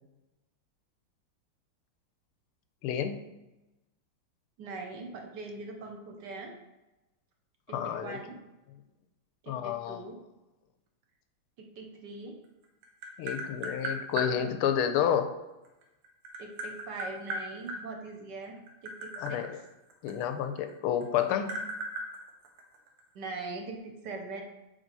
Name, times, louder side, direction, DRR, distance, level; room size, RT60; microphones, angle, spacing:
voice 1, 2.8-3.2 7.7-8.2 9.5-10.0 13.2-15.3 19.2-19.6 20.0-21.6, left 9 dB, 90° left, 8 dB, 1.5 m, -30 dB
voice 2, 4.6-6.5 7.7-8.4 9.4-10.2 11.6-12.4 13.6-14.5 16.4-18.6 18.8-19.6 23.1-24.4, right 3 dB, 60° right, 2 dB, 1.3 m, -42 dB
Tap, 12.4-14.3 15.6-17.8 18.5-20.7 21.0-23.0, right 1 dB, 75° right, 1.9 m, -36 dB
8.9 x 3.3 x 4.1 m, 0.99 s
omnidirectional pair, 2.4 m